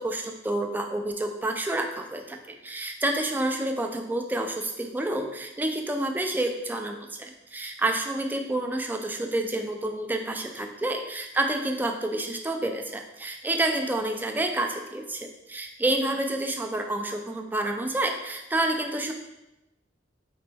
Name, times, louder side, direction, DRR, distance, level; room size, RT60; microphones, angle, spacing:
voice 1, 0.0-19.1, right 1 dB, 10° right, 3 dB, 0.3 m, -29 dB
4.4 x 3.0 x 3.3 m, 0.95 s
head